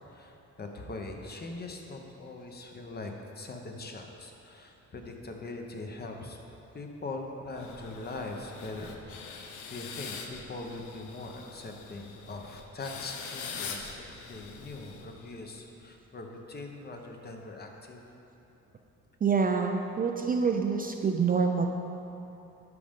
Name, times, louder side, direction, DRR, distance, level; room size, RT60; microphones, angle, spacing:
voice 1, 0.1-6.4 6.7-18.0, left 2 dB, 30° left, 2 dB, 0.9 m, -42 dB
sound 1, 7.6-15.5, left 5 dB, 80° left, 0.7 m, -43 dB
voice 2, 19.2-21.7, right 5 dB, 30° right, 3 dB, 0.4 m, -26 dB
11.0 x 5.0 x 3.6 m, 2.9 s
cardioid pair, 90°, 30 cm